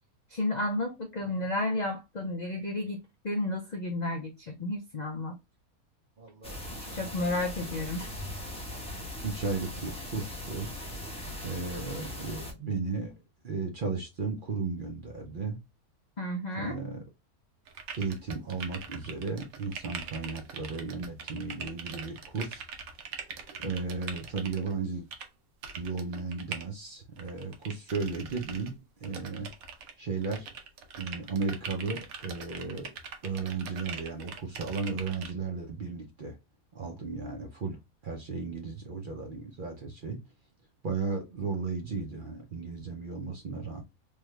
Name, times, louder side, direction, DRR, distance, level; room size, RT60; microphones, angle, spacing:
voice 1, 0.3-5.4 6.9-8.0 16.2-16.8, left 1 dB, 85° left, 0.3 m, -32 dB
voice 2, 6.2-7.4 9.2-10.7 11.4-13.1 13.4-15.6 16.6-17.0 18.0-22.7 23.6-25.1 25.8-28.7 29.0-29.5 30.0-30.5 31.0-32.9 33.2-36.4 36.7-40.2 40.8-43.8, right 4 dB, 50° right, 0.6 m, -35 dB
sound 1, 6.4-12.5, left 1 dB, 5° left, 0.6 m, -39 dB
sound 2, 17.7-24.7 25.1-25.3 25.6-26.6 27.2-28.7 29.0-29.9 30.2-35.3, right 6 dB, 75° right, 1.1 m, -42 dB
3.3 x 2.3 x 3.1 m
omnidirectional pair, 1.5 m